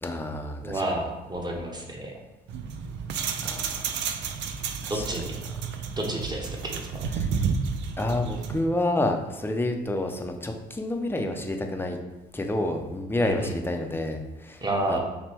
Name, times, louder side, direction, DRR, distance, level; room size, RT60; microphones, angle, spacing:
voice 1, 0.0-0.8 3.4-3.8 4.8-5.0 7.2-7.3 8.0-12.0 12.3-14.6 14.9-15.0, left 1 dB, 10° left, 3 dB, 0.6 m, -29 dB
voice 2, 0.6-2.2 4.9-5.3 6.0-7.0 13.2-13.5 14.6-15.0, right 1 dB, 25° right, 0 dB, 1.1 m, -30 dB
sound 1, 2.5-8.7, right 6 dB, 75° right, 0.5 m, -31 dB
5.9 x 2.2 x 3.4 m, 1.1 s
supercardioid pair, 75°, 19 cm